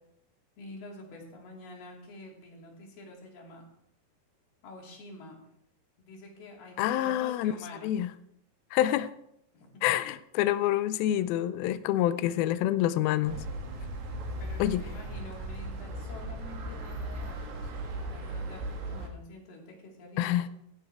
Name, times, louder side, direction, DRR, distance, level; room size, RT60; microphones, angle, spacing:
voice 1, 0.6-3.6 4.6-5.4 6.0-7.9 9.5-9.7 14.4-20.5, left 2 dB, 65° left, -1 dB, 4.6 m, -47 dB
voice 2, 6.8-7.5 7.8-8.1 8.7-9.1 9.8-13.4 14.6-14.8 20.2-20.5, left 13 dB, 85° left, 13 dB, 2.1 m, -27 dB
sound 1, 13.2-19.1, right 1 dB, 85° right, 4.0 m, -37 dB
16.5 x 11.5 x 3.5 m, 0.77 s
omnidirectional pair, 4.9 m